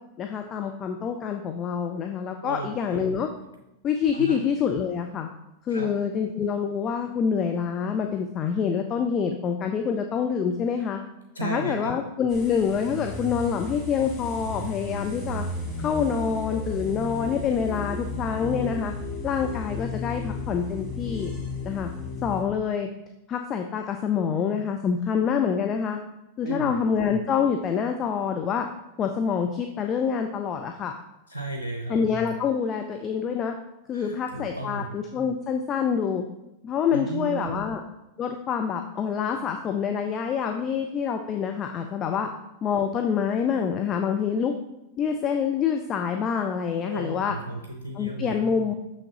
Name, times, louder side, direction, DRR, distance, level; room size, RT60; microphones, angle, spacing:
voice 1, 0.2-3.3 3.8-5.3 5.7-11.0 11.4-15.4 15.8-18.9 19.2-21.3 21.6-21.9 22.2-22.9 23.3-26.0 26.4-28.7 29.0-30.9 31.9-33.5 33.9-36.3 36.6-37.8 38.2-42.3 42.6-44.5 45.0-47.4 47.9-48.7, left 7 dB, 30° left, 5 dB, 0.5 m, -26 dB
voice 2, 2.4-3.1 4.1-4.4 5.7-5.9 11.3-11.9 26.4-26.7 31.3-32.0 33.9-34.8 36.9-37.7 46.9-48.3, right 2 dB, 85° right, 2 dB, 0.6 m, -34 dB
sound 1, 12.3-22.4, left 2 dB, 15° left, 1.9 m, -34 dB
6.4 x 6.0 x 2.9 m, 0.91 s
figure-of-eight pair, 90°, 0 cm